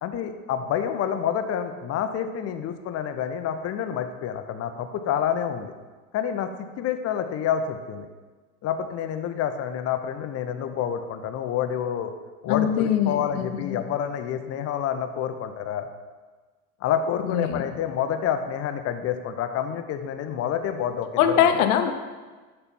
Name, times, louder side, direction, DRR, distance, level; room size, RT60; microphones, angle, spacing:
voice 1, 0.0-5.7 6.1-8.1 8.6-12.1 12.4-15.9 16.8-21.1 21.3-21.4, left 9 dB, 35° left, 8 dB, 0.6 m, -28 dB
voice 2, 12.5-13.8 17.3-17.6 21.2-21.9, left 9 dB, 75° left, 8 dB, 0.8 m, -22 dB
6.9 x 4.3 x 4.3 m, 1.3 s
hypercardioid pair, 100°, 45 cm